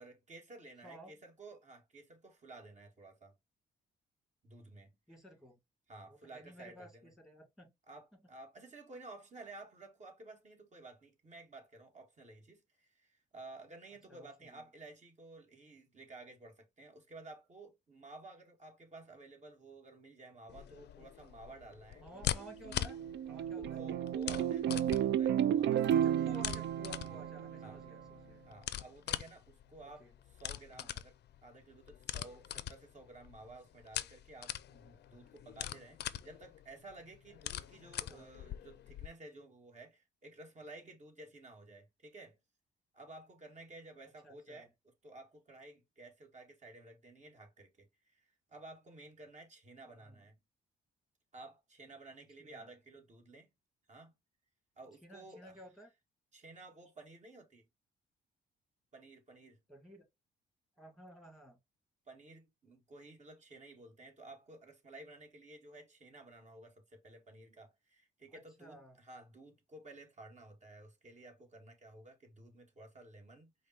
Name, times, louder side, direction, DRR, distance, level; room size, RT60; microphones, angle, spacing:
voice 1, 0.0-3.4 4.4-5.0 5.9-7.1 7.9-22.3 23.6-26.4 27.6-27.8 28.5-31.2 31.4-42.4 42.9-44.7 45.0-50.4 51.3-53.5 53.9-54.1 54.8-55.6 56.3-57.7 58.9-59.6 62.1-73.7, right 2 dB, 35° right, 1.8 m, -54 dB
voice 2, 5.1-5.6 6.0-7.7 14.1-14.6 22.0-23.8 25.9-28.5 29.8-30.1 30.7-30.9 38.1-38.3 44.2-44.7 49.9-50.2 52.4-52.7 55.0-55.9 59.7-60.1 60.8-61.6 68.3-69.0, equal, ahead, 2.0 m, -54 dB
sound 1, 20.5-39.1, left 11 dB, 60° left, 0.5 m, -43 dB
sound 2, 22.4-28.0, right 10 dB, 65° right, 0.4 m, -32 dB
4.9 x 2.2 x 4.2 m
cardioid pair, 90°, 20 cm